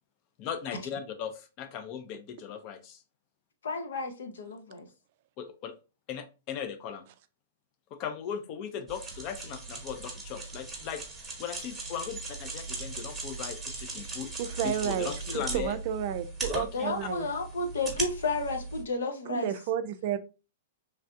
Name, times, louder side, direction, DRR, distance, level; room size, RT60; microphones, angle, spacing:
voice 1, 0.4-3.0 5.4-5.7 6.1-7.0 7.9-14.3 14.6-15.7 16.5-17.1, left 8 dB, 35° left, 0.5 m, -38 dB
voice 2, 3.6-4.9 16.7-19.5, left 3 dB, 90° left, 0.7 m, -32 dB
sound 1, 8.9-18.8, right 3 dB, 5° right, 1.0 m, -39 dB
voice 3, 14.4-17.3 19.3-20.2, right 10 dB, 50° right, 0.3 m, -32 dB
3.2 x 2.3 x 2.6 m
hypercardioid pair, 145°, 0 cm